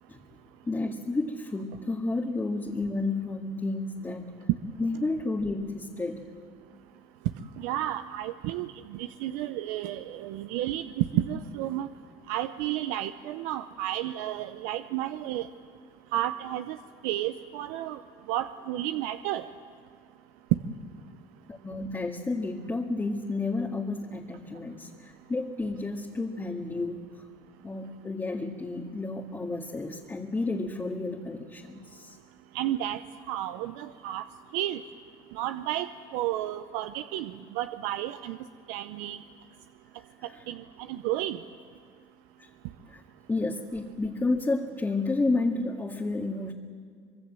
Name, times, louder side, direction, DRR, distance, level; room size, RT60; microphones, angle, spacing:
voice 1, 0.7-4.3 4.8-6.3 21.5-27.1 27.6-32.2 42.4-42.5 42.9-43.0 43.3-46.5, left 3 dB, 15° left, 0 dB, 2.0 m, -31 dB
voice 2, 7.6-11.9 12.3-15.5 16.1-16.8 17.0-18.0 18.3-19.5 32.5-33.0 33.3-34.2 34.5-34.8 35.3-35.9 36.1-38.4 38.7-39.2 40.5-40.6 40.9-41.4, right 13 dB, 80° right, 10 dB, 0.8 m, -31 dB
25.5 x 21.5 x 7.7 m, 2.1 s
supercardioid pair, 85°, 12 cm